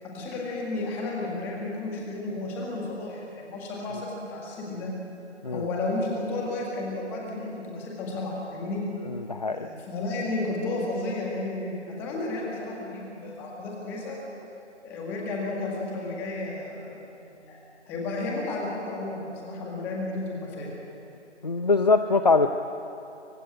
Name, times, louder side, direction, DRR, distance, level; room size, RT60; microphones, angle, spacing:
voice 1, 0.0-4.9 5.5-8.8 9.5-14.2 14.8-16.9 17.4-17.6 17.9-20.7, left 2 dB, 5° left, -2 dB, 1.8 m, -32 dB
voice 2, 9.1-9.7 21.4-22.6, left 3 dB, 35° left, 8 dB, 0.7 m, -23 dB
25.5 x 24.0 x 8.9 m, 2.8 s
figure-of-eight pair, 155°, 36 cm